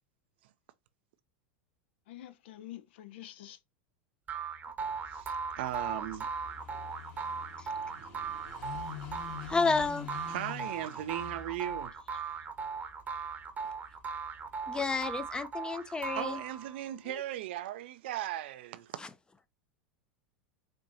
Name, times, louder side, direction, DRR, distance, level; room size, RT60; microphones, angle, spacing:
voice 1, 2.1-3.6 17.0-17.2, left 12 dB, 65° left, 0.6 m, -47 dB
sound 1, 4.3-16.8, right 5 dB, 25° right, 0.8 m, -38 dB
Car passing by / Idling, 4.9-15.6, left 7 dB, 50° left, 2.2 m, -48 dB
voice 2, 5.1-6.3 8.3-8.4 10.3-11.9 16.2-18.9, right 13 dB, 65° right, 0.4 m, -37 dB
voice 3, 9.5-10.1 14.7-16.4 19.0-19.1, left 4 dB, 15° left, 0.5 m, -31 dB
4.4 x 2.6 x 2.6 m
hypercardioid pair, 90°, 6 cm